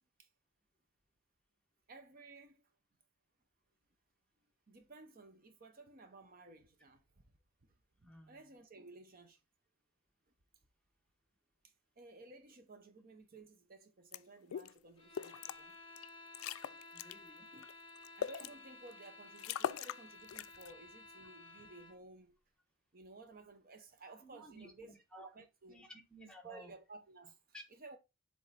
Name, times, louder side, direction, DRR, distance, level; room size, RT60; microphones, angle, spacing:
voice 1, 1.9-2.7 4.7-7.2 8.3-9.4 12.0-15.8 17.5-17.7 18.2-22.3 22.9-25.8 26.4-27.4 27.8-28.0, right 3 dB, 45° right, 0.8 m, -56 dB
voice 2, 8.0-8.5 16.9-17.5 24.2-25.3 25.7-26.7 27.5-27.6, equal, 5° left, 1.1 m, -55 dB
sound 1, 14.1-14.2 14.5-14.7 15.1-15.6 16.0-16.1 16.3-17.1 17.6-18.5 19.0-19.1 19.4-20.0 20.3-20.7, left 9 dB, 80° left, 0.3 m, -40 dB
sound 2, 15.0-22.0, left 2 dB, 25° left, 1.2 m, -55 dB
7.4 x 3.6 x 4.0 m
head